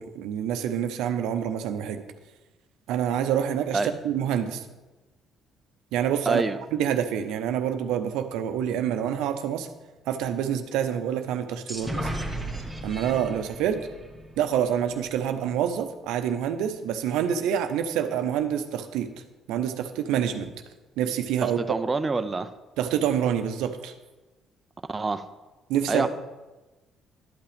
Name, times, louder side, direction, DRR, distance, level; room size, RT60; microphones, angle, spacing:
voice 1, 0.0-2.0 2.9-3.8 4.0-4.6 5.9-6.4 6.7-9.7 10.1-12.1 12.8-13.8 14.4-19.1 19.5-20.5 21.0-21.6 22.8-23.9 25.7-26.1, right 9 dB, 85° right, 8 dB, 0.7 m, -27 dB
voice 2, 6.3-6.6 21.4-22.5 24.9-25.2 25.9-26.1, right 3 dB, 25° right, 9 dB, 0.6 m, -26 dB
sound 1, 11.7-15.4, right 1 dB, ahead, 1.5 m, -35 dB
11.5 x 5.7 x 5.1 m, 1.1 s
cardioid pair, 85°, 0 cm